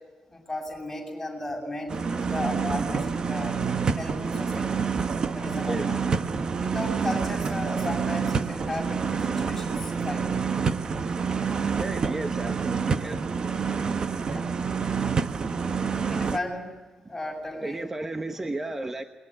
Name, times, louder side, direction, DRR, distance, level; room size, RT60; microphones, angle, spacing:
voice 1, 0.3-3.6 4.0-4.9 5.3-6.3 6.6-10.3 14.2-14.5 16.1-16.7 17.1-17.8, left 1 dB, 10° left, 1 dB, 7.5 m, -35 dB
sound 1, 1.9-16.4, right 5 dB, 40° right, 1.1 m, -27 dB
voice 2, 5.7-6.0 11.8-13.6 17.0-17.1 17.6-19.0, right 2 dB, 15° right, 6 dB, 1.1 m, -34 dB
28.0 x 21.5 x 9.9 m, 1.3 s
wide cardioid pair, 160°, 2 cm